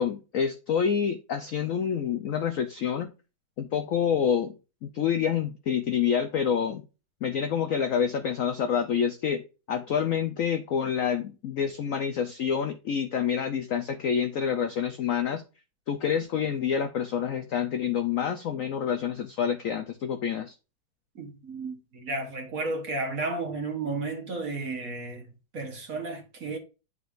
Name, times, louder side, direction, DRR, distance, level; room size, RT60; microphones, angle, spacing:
voice 1, 0.0-3.1 3.6-4.6 4.8-6.8 7.2-9.4 9.7-15.4 15.9-20.5, left 7 dB, 75° left, 0.7 m, -27 dB
voice 2, 21.1-26.6, right 3 dB, 50° right, 1.5 m, -33 dB
9.5 x 4.7 x 2.5 m
omnidirectional pair, 2.1 m